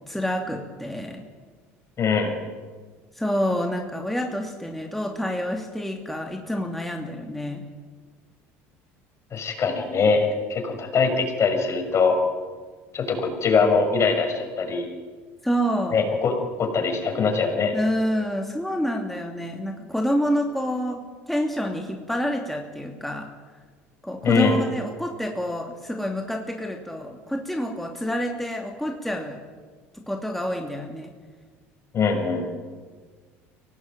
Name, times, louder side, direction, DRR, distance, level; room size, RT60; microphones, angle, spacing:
voice 1, 0.1-1.2 3.1-7.6 15.4-16.0 17.7-23.3 24.0-29.4 29.9-31.1, equal, 5° left, 2 dB, 2.8 m, -28 dB
voice 2, 2.0-2.4 9.3-12.2 12.9-14.9 15.9-17.8 24.2-24.6 31.9-32.5, left 4 dB, 45° left, 4 dB, 6.4 m, -22 dB
24.0 x 18.0 x 9.1 m, 1.5 s
hypercardioid pair, 70°, 7 cm